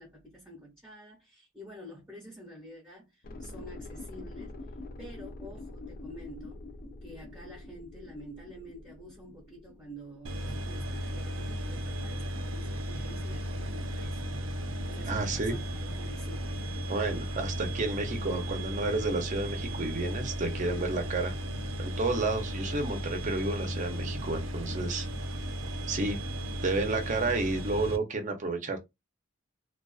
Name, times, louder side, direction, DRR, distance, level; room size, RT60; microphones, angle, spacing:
voice 1, 0.0-4.6 5.0-6.6 7.0-14.2 14.8-16.6, equal, 10° right, 0.9 m, -48 dB
sound 1, 3.2-11.0 11.3-11.4, left 2 dB, 50° left, 0.4 m, -45 dB
sound 2, 10.2-28.0, equal, 90° right, 0.5 m, -35 dB
voice 2, 15.1-15.6 16.9-21.3 21.8-25.1 25.9-26.2 26.6-28.8, right 3 dB, 40° right, 0.6 m, -31 dB
2.4 x 2.2 x 2.3 m
head